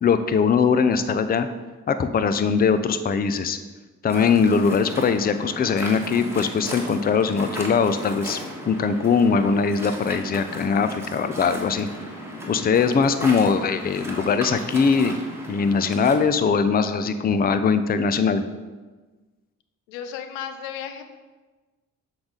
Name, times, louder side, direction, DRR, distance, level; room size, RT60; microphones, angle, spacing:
voice 1, 0.0-1.5 1.9-3.6 4.0-8.4 8.7-11.9 12.5-15.2 15.5-18.4, left 5 dB, 25° left, 11 dB, 0.4 m, -21 dB
Waves surf, 4.1-16.2, equal, 5° right, 1.4 m, -36 dB
voice 2, 19.9-21.0, left 8 dB, 85° left, 8 dB, 0.5 m, -34 dB
6.7 x 4.0 x 3.8 m, 1.3 s
hypercardioid pair, 45°, 40 cm